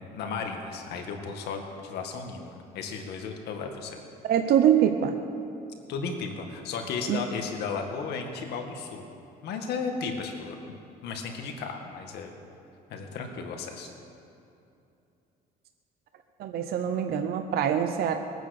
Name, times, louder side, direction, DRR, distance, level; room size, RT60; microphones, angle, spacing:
voice 1, 0.0-4.0 5.9-9.1 9.4-10.6 11.0-12.3 12.9-13.9, left 5 dB, 75° left, 3 dB, 1.9 m, -34 dB
voice 2, 4.3-5.2 7.1-7.2 16.4-18.1, right 9 dB, 65° right, 6 dB, 0.9 m, -24 dB
21.0 x 9.0 x 6.8 m, 2.7 s
cardioid pair, 110°, 17 cm